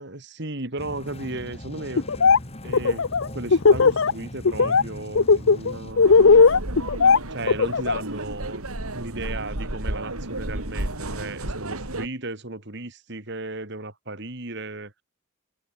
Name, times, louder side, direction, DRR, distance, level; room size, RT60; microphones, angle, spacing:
voice 1, 0.0-2.0 2.6-3.1 3.3-6.1 7.3-8.7 8.9-14.9, right 2 dB, 50° right, 2.9 m, -35 dB
sound 1, 0.8-5.9, equal, 30° left, 4.5 m, -39 dB
Laughter, 2.0-2.4 2.7-4.1 4.4-4.8 5.1-8.0, left 4 dB, 65° left, 0.7 m, -16 dB
sound 2, 5.9-12.1, right 1 dB, 80° right, 4.2 m, -32 dB
head